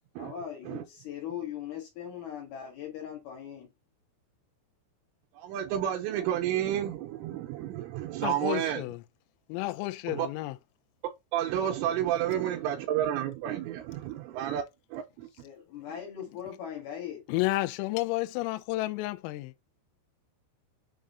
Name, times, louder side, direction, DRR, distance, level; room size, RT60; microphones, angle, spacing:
voice 1, 0.2-3.7 15.4-17.2, left 9 dB, 60° left, 2.9 m, -40 dB
voice 2, 5.3-8.8 10.1-10.3 11.3-14.6 14.9-15.3, right 11 dB, 80° right, 3.2 m, -30 dB
voice 3, 8.2-9.0 9.5-10.5 17.3-19.5, left 19 dB, 85° left, 3.2 m, -31 dB
7.1 x 3.7 x 3.8 m
omnidirectional pair, 6.0 m